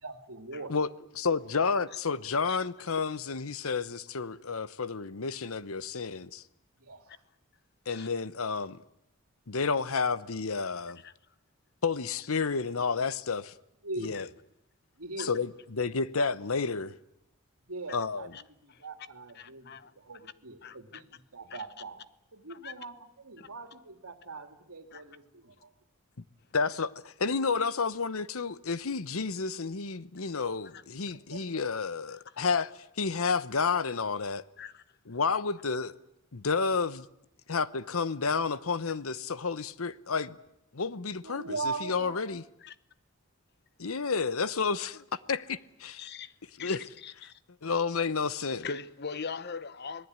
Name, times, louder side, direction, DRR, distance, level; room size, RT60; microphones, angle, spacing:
voice 1, 0.0-0.8 6.8-7.2 13.8-14.2 15.0-15.4 17.7-18.3 18.6-22.0 22.3-25.7 31.1-31.4 41.2-42.3, right 3 dB, 85° right, 2.6 m, -41 dB
voice 2, 1.2-6.4 7.9-8.8 9.5-11.0 11.8-13.5 14.0-14.2 15.2-16.9 17.9-18.3 26.5-32.7 33.0-34.4 35.1-35.9 36.3-37.1 37.5-40.4 40.7-42.4 43.8-46.1 46.6-46.8 47.6-48.7, left 5 dB, 75° left, 0.9 m, -30 dB
voice 3, 19.3-20.3 20.6-21.0 21.5-21.6 22.5-22.8 23.4-23.5 24.9-25.0 30.7-30.8 34.6-34.8 42.6-42.7 46.0-46.3 46.6-47.4 48.6-50.1, left 5 dB, 50° left, 1.0 m, -41 dB
26.0 x 19.0 x 9.6 m
head